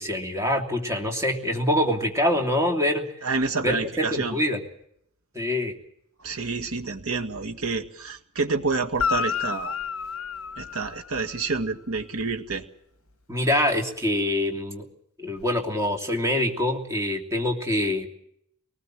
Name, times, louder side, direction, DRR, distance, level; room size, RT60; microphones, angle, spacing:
voice 1, 0.0-3.1 3.6-4.6 5.3-5.7 13.3-14.9 15.2-18.1, left 1 dB, 15° right, 3 dB, 2.9 m, -25 dB
voice 2, 3.2-4.4 6.2-9.8 10.6-12.6, right 4 dB, 80° right, 6 dB, 2.0 m, -28 dB
Guitar, 8.9-11.5 15.4-15.5, left 6 dB, 65° left, 0.8 m, -30 dB
23.5 x 19.5 x 7.6 m, 0.72 s
head